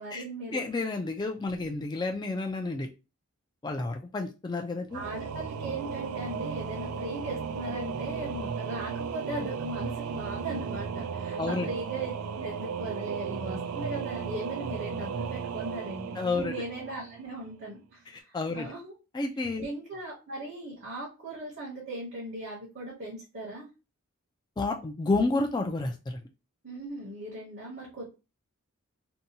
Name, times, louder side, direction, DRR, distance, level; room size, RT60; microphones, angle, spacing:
voice 1, 0.0-0.7 4.9-18.9 19.6-23.7 26.6-28.1, right 1 dB, 50° right, -4 dB, 0.8 m, -38 dB
voice 2, 0.5-2.9 3.6-5.0 11.4-11.7 16.2-16.5 18.3-18.7 19.1-19.7 24.6-26.2, left 3 dB, 20° left, 3 dB, 0.3 m, -30 dB
Singing / Musical instrument, 4.9-17.5, right 6 dB, 90° right, 0.3 m, -35 dB
2.7 x 2.2 x 2.7 m, 0.30 s
head